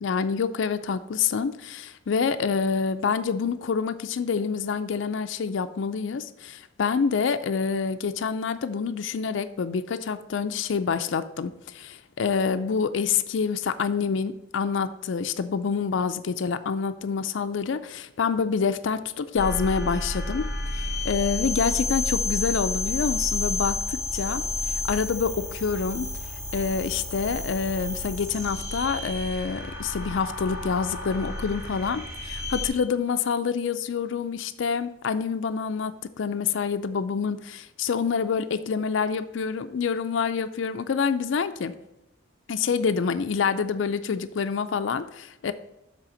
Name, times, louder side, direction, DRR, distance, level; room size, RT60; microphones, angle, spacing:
voice 1, 0.0-20.4 20.7-24.4 24.9-26.1 26.5-41.7 42.5-45.5, left 6 dB, 75° left, 10 dB, 0.4 m, -27 dB
sound 1, 19.4-32.7, left 2 dB, 15° right, 1.6 m, -31 dB
7.5 x 3.4 x 6.4 m, 0.92 s
head